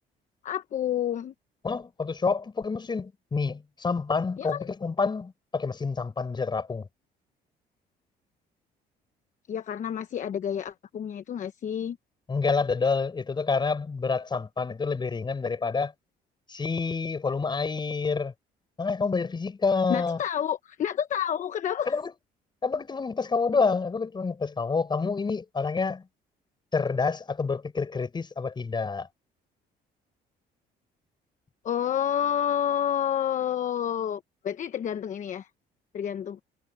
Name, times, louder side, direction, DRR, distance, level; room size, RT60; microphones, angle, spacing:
voice 1, 0.4-1.3 4.4-4.7 9.5-12.0 19.9-22.0 31.6-35.5 35.9-36.4, left 9 dB, 45° left, 1.1 m, -29 dB
voice 2, 1.6-6.9 12.3-15.9 16.5-18.3 18.8-20.2 21.9-22.1 22.6-26.1 26.7-29.1, left 4 dB, 25° left, 6.7 m, -28 dB
cardioid pair, 110°, 17 cm